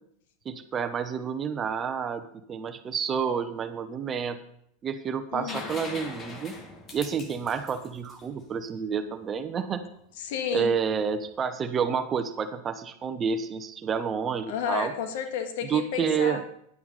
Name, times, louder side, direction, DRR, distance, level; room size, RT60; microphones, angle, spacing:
voice 1, 0.4-4.4 4.8-6.5 6.9-9.8 10.5-14.9 15.6-16.4, right 6 dB, 30° right, 9 dB, 0.9 m, -29 dB
voice 2, 5.3-5.7 10.2-10.7 14.5-16.4, left 8 dB, 70° left, 6 dB, 1.6 m, -32 dB
sound 1, 5.5-9.2 11.1-11.2, left 3 dB, 30° left, 2.0 m, -41 dB
10.5 x 9.3 x 4.1 m, 0.70 s
hypercardioid pair, 110°, 0 cm